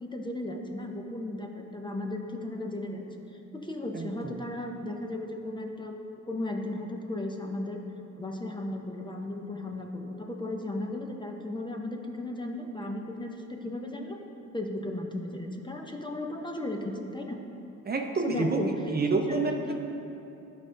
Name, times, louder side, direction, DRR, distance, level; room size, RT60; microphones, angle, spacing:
voice 1, 0.0-3.3 3.5-5.9 6.3-7.8 8.2-14.2 14.5-17.4 18.1-18.9 19.3-19.8, left 1 dB, 15° left, 2 dB, 0.7 m, -35 dB
voice 2, 3.9-4.3 17.9-19.5, right 3 dB, 30° right, 3 dB, 0.7 m, -28 dB
11.5 x 5.1 x 3.8 m, 2.8 s
cardioid pair, 90°, 30 cm